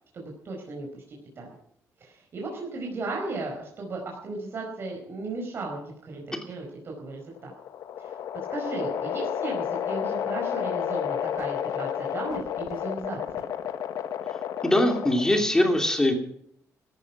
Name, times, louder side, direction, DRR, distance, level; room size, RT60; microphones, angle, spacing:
voice 1, 0.1-1.5 2.0-7.5 8.0-8.2 8.5-13.5, right 3 dB, 45° right, -1 dB, 4.9 m, -36 dB
sound 1, 7.2-15.5, left 9 dB, 85° left, 1.4 m, -31 dB
voice 2, 14.6-16.1, left 1 dB, 10° left, 5 dB, 2.9 m, -22 dB
17.0 x 13.0 x 6.0 m, 0.67 s
cardioid pair, 150°, 6 cm